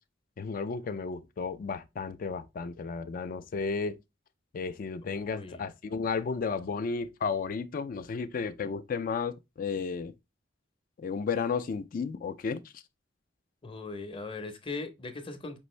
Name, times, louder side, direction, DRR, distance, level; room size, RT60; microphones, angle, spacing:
voice 1, 0.4-4.0 4.5-10.1 11.0-12.6, left 5 dB, 45° left, 0.4 m, -33 dB
voice 2, 5.0-5.7 13.6-15.6, left 3 dB, 30° left, 0.7 m, -39 dB
5.3 x 2.6 x 3.1 m
head